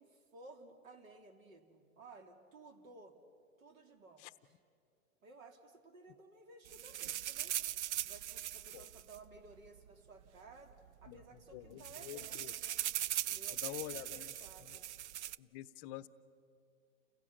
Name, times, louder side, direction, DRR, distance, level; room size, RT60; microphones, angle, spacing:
voice 1, 0.0-3.2 3.6-4.5 5.2-7.6 8.0-10.7 11.0-12.8 13.2-14.9, right 3 dB, 70° right, 5 dB, 3.0 m, -57 dB
sound 1, 6.7-9.9 10.7-10.8 11.0-11.2 11.5-15.4, right 12 dB, 55° right, 0.5 m, -40 dB
voice 2, 11.5-12.5 13.6-14.3 15.4-16.1, left 15 dB, 30° left, 14 dB, 0.7 m, -47 dB
29.5 x 16.0 x 7.2 m, 2.4 s
hypercardioid pair, 125°, 41 cm